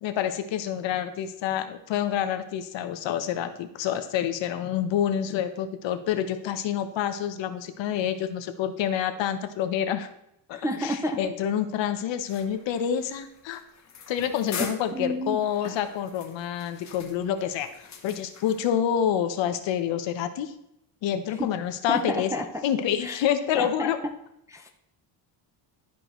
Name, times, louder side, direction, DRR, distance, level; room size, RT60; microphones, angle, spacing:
voice 1, 0.0-10.1 10.5-13.6 14.1-17.7 18.0-20.5 21.0-22.3 22.6-24.0, left 9 dB, 70° left, 9 dB, 0.9 m, -28 dB
voice 2, 10.5-11.2 14.9-15.4 21.4-21.5 21.9-22.5 23.0-23.2 23.5-23.9 24.5-24.7, left 1 dB, 10° right, 2 dB, 0.3 m, -29 dB
sound 1, 12.3-18.7, left 6 dB, 35° left, 1.1 m, -43 dB
12.5 x 4.8 x 3.0 m, 0.81 s
cardioid pair, 145°, 46 cm